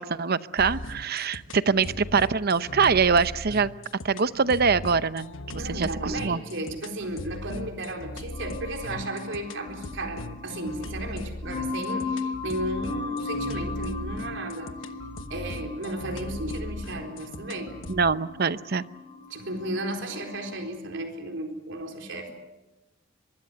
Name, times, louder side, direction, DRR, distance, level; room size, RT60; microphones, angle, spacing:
voice 1, 0.0-3.7 4.0-6.4 17.9-18.8, right 5 dB, 55° right, 14 dB, 0.8 m, -24 dB
sound 1, 0.6-18.1, left 1 dB, 85° left, 1.2 m, -39 dB
voice 2, 5.5-14.7 15.3-17.7 19.3-22.3, right 1 dB, 70° right, 3 dB, 4.1 m, -34 dB
sound 2, 8.3-20.6, left 3 dB, 25° left, 4.0 m, -37 dB
23.5 x 23.5 x 8.0 m, 1.0 s
head